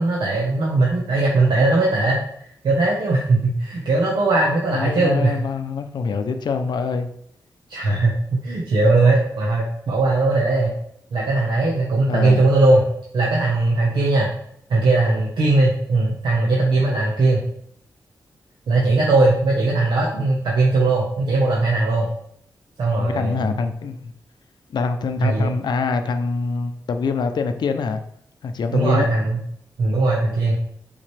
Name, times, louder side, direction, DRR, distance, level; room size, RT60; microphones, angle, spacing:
voice 1, 0.0-2.2 2.6-5.4 7.7-10.7 11.1-12.8 13.1-14.3 14.7-17.4 18.7-22.1 22.8-23.6 25.2-25.5 28.7-29.4 29.8-30.5, right 2 dB, 90° right, 1.2 m, -19 dB
voice 2, 4.7-7.1 12.1-12.5 23.0-24.1 24.7-28.0 28.4-29.1, left 4 dB, 75° left, 0.6 m, -24 dB
7.3 x 5.1 x 3.4 m
wide cardioid pair, 165°, 7 cm